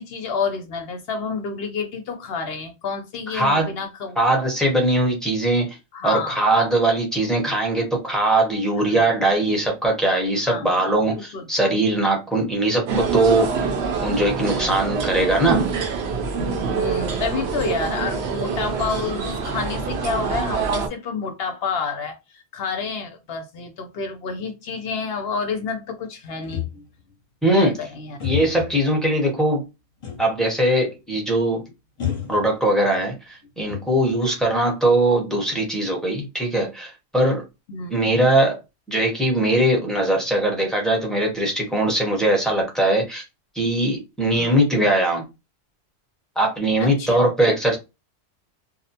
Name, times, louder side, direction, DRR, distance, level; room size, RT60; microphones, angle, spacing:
voice 1, 0.0-4.2 5.9-6.4 8.9-9.2 10.5-10.8 11.3-11.5 16.6-26.7 27.5-28.2 37.7-37.9 44.3-44.6 46.8-47.2, left 5 dB, 65° left, 0.7 m, -29 dB
voice 2, 3.3-3.7 4.2-5.8 6.0-13.5 14.0-15.7 27.4-27.7 28.2-29.7 30.2-31.6 32.3-37.4 37.9-38.6 38.9-43.2 43.5-45.2 46.4-47.8, right 1 dB, ahead, 0.7 m, -21 dB
sound 1, 12.9-20.9, right 5 dB, 75° right, 0.8 m, -25 dB
sound 2, 26.4-27.1 28.2-28.8 30.0-30.4 30.7-30.8 32.0-33.0 33.4-34.2, left 11 dB, 35° left, 0.7 m, -31 dB
2.5 x 2.1 x 2.7 m
omnidirectional pair, 1.1 m